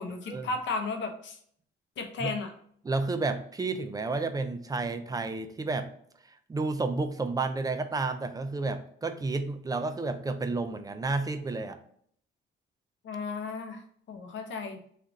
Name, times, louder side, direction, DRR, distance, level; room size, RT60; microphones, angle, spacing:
voice 1, 0.0-1.4 2.0-2.5 13.0-13.8 14.1-14.8, left 4 dB, 70° left, 5 dB, 0.7 m, -34 dB
voice 2, 2.8-5.9 6.5-11.8, right 3 dB, 20° right, 7 dB, 0.4 m, -31 dB
3.3 x 2.4 x 3.8 m, 0.62 s
cardioid pair, 90°, 20 cm